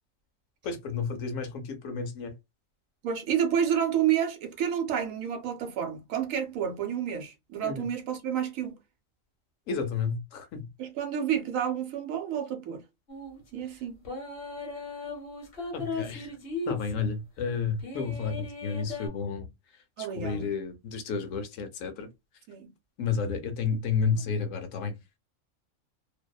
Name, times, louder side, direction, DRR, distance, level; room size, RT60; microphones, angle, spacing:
voice 1, 0.6-2.3 7.6-7.9 9.7-10.6 15.7-16.3 16.7-19.5 20.2-22.1 23.0-24.9, left 5 dB, 75° left, 0.9 m, -31 dB
voice 2, 3.0-8.7 10.8-12.8 13.5-14.0 20.0-20.5 22.5-22.7 24.1-24.3, right 9 dB, 80° right, 1.0 m, -30 dB
sound 1, 13.1-13.4 14.0-17.0 17.8-19.1, left 3 dB, 50° left, 1.1 m, -37 dB
2.7 x 2.1 x 2.2 m
omnidirectional pair, 1.4 m